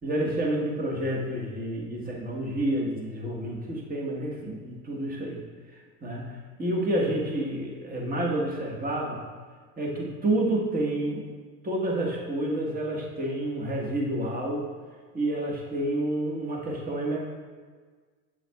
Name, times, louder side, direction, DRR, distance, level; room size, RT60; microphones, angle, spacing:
voice 1, 0.0-5.4 6.0-9.2 9.8-11.2 11.6-14.7 15.1-17.2, right 1 dB, 20° right, -1 dB, 1.4 m, -29 dB
7.5 x 7.5 x 2.3 m, 1.5 s
hypercardioid pair, 95°, 46 cm